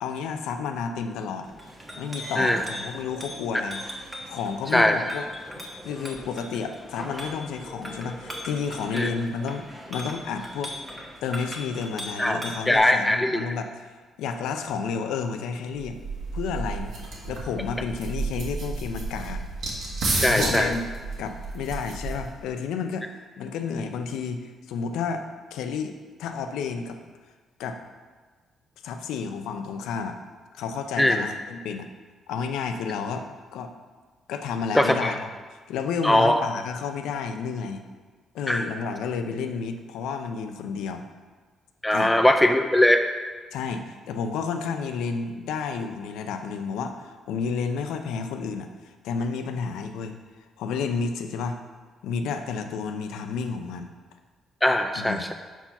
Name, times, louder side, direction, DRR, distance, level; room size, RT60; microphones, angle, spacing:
voice 1, 0.0-1.5 2.0-3.8 4.3-5.2 5.8-10.7 11.2-13.9 14.2-16.0 16.3-16.9 17.3-19.4 20.2-20.8 21.2-23.1 23.4-25.3 25.5-27.0 27.6-27.8 28.8-30.2 30.5-31.9 32.3-33.7 34.3-35.3 35.7-37.8 38.3-41.0 41.9-42.1 43.5-50.2 50.6-51.6 52.0-53.9 54.9-55.3, left 5 dB, 90° left, 7 dB, 0.5 m, -31 dB
Chink clink, 1.4-12.8, equal, 15° right, 1.2 m, -39 dB
voice 2, 12.7-13.4 20.2-20.7 31.0-31.2 34.7-35.1 36.0-36.4 38.5-38.6 41.8-43.0 54.6-55.3, left 1 dB, 10° left, 6 dB, 0.4 m, -20 dB
sound 1, 15.8-22.5, right 3 dB, 70° right, 1.6 m, -31 dB
5.7 x 4.5 x 5.8 m, 1.4 s
cardioid pair, 90°, 0 cm